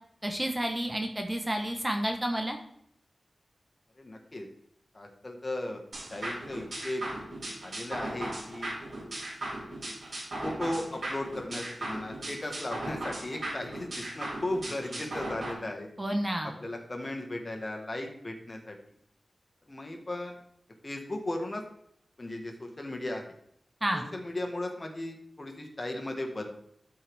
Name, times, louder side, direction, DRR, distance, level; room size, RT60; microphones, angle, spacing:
voice 1, 0.2-2.6 16.0-16.5 23.8-24.1, right 1 dB, 20° right, 3 dB, 1.1 m, -30 dB
voice 2, 4.0-4.5 4.9-5.8 6.1-7.0 7.6-8.7 10.4-15.9 16.4-18.7 19.7-20.4 20.8-21.6 22.2-23.2 23.9-26.5, left 1 dB, 35° left, 3 dB, 1.5 m, -36 dB
sound 1, 5.9-15.5, right 1 dB, 70° right, 2.5 m, -37 dB
13.0 x 4.7 x 3.5 m, 0.69 s
wide cardioid pair, 100°, 0 cm